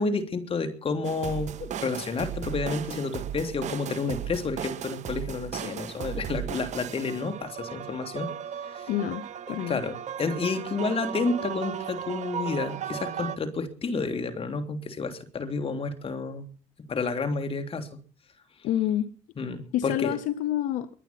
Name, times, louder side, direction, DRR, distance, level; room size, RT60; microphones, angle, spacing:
voice 1, 0.0-8.3 8.7-8.9 9.5-16.5 16.9-18.0 19.4-20.2, left 4 dB, 45° left, 7 dB, 3.1 m, -30 dB
sound 1, 1.0-13.4, right 9 dB, 65° right, 1.1 m, -36 dB
voice 2, 8.9-9.8 18.6-19.1 19.7-20.9, left 12 dB, 80° left, 14 dB, 0.8 m, -28 dB
23.0 x 9.3 x 5.8 m, 0.41 s
supercardioid pair, 65°, 13 cm